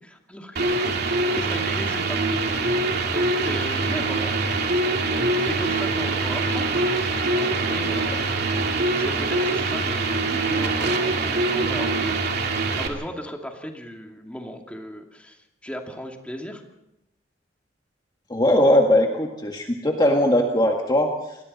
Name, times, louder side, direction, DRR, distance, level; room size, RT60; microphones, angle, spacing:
voice 1, 0.0-2.4 2.7-4.4 5.0-6.7 7.3-8.4 9.0-16.6, equal, 5° left, 2 dB, 2.4 m, -37 dB
sound 1, 0.6-12.9, right 3 dB, 55° right, 2.7 m, -24 dB
voice 2, 18.3-21.4, left 1 dB, 20° left, 1 dB, 1.8 m, -20 dB
29.0 x 21.5 x 4.2 m, 0.87 s
head